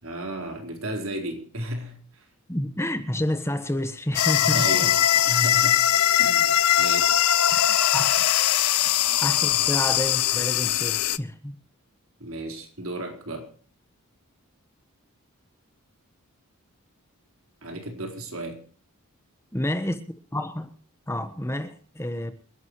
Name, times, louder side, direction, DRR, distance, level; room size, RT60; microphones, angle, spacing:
voice 1, 0.0-2.2 4.4-5.8 6.2-7.2 12.2-13.5 17.6-18.6, right 1 dB, 65° right, 4.4 m, -34 dB
voice 2, 2.5-4.9 7.5-8.3 9.2-11.6 19.5-20.0 20.3-20.7 21.1-22.3, left 1 dB, 10° left, 1.2 m, -29 dB
sound 1, 4.1-11.2, left 12 dB, 80° left, 0.7 m, -21 dB
27.5 x 12.0 x 3.1 m
head